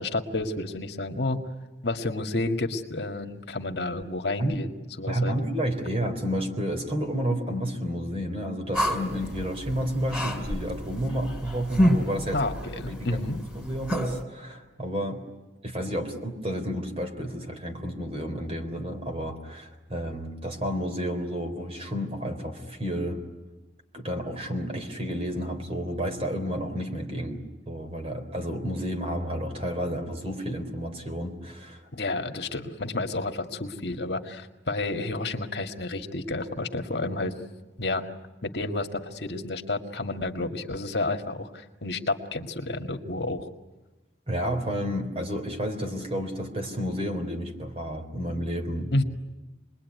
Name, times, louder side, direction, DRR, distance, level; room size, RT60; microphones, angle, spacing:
voice 1, 0.0-1.4 1.8-4.7 5.0-5.3 12.3-13.4 31.9-37.3 37.8-38.1 38.4-43.5 48.9-49.0, left 2 dB, 65° left, 4 dB, 2.0 m, -30 dB
voice 2, 5.1-13.2 13.6-15.2 15.6-23.2 23.9-27.4 27.7-31.9 44.3-48.9, equal, 35° right, 5 dB, 3.8 m, -31 dB
sound 1, 8.7-14.2, equal, 5° right, 4.3 m, -29 dB
28.5 x 21.5 x 9.5 m, 1.1 s
head